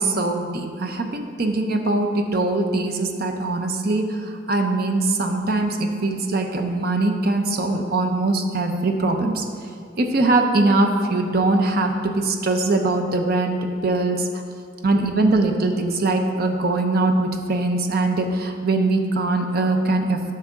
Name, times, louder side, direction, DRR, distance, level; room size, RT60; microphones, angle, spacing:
voice 1, 0.0-4.2 4.5-9.4 10.0-14.4 14.8-20.3, right 2 dB, 50° right, 5 dB, 0.6 m, -22 dB
11.5 x 5.5 x 3.6 m, 2.3 s
head